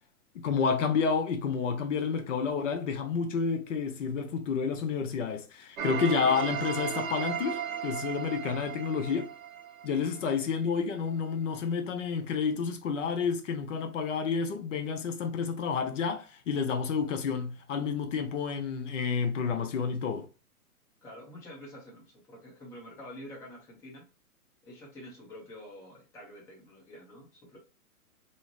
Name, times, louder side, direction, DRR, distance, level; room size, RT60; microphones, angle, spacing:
voice 1, 0.3-9.3 9.8-20.3, left 6 dB, 55° left, 0.6 m, -30 dB
sound 1, 5.8-10.6, right 8 dB, 65° right, 0.6 m, -36 dB
voice 2, 21.0-24.1 24.6-27.6, left 1 dB, 5° left, 0.6 m, -48 dB
2.7 x 2.5 x 2.9 m
hypercardioid pair, 125°, 45 cm